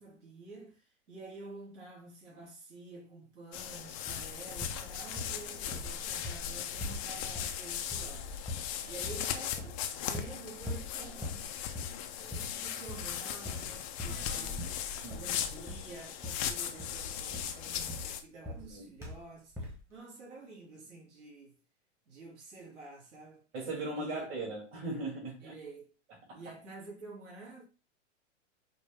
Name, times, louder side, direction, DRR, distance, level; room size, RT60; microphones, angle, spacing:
voice 1, 0.0-11.8 12.2-14.6 14.9-21.6 22.1-23.5 23.9-24.4 25.4-25.9 26.3-27.6, right 3 dB, 70° right, 2.5 m, -50 dB
sound 1, 3.5-18.2, left 9 dB, 30° left, 0.4 m, -38 dB
sound 2, 4.1-4.3 4.6-5.4 5.7-8.2 8.5-8.8 9.0-9.8 10.1-10.4 10.6-10.9 11.2-11.5 11.7-12.0 12.3-12.6 12.9-13.2 13.4-14.2 14.6-15.4 15.7-15.9 16.2-16.5 16.8-18.7 19.0-19.3 19.5-19.8, left 1 dB, 5° right, 1.0 m, -42 dB
voice 2, 14.1-14.7 15.0-15.2 18.4-18.8 23.5-25.5 26.3-26.4, right 2 dB, 35° right, 2.1 m, -39 dB
5.1 x 2.2 x 3.4 m
hypercardioid pair, 135°, 37 cm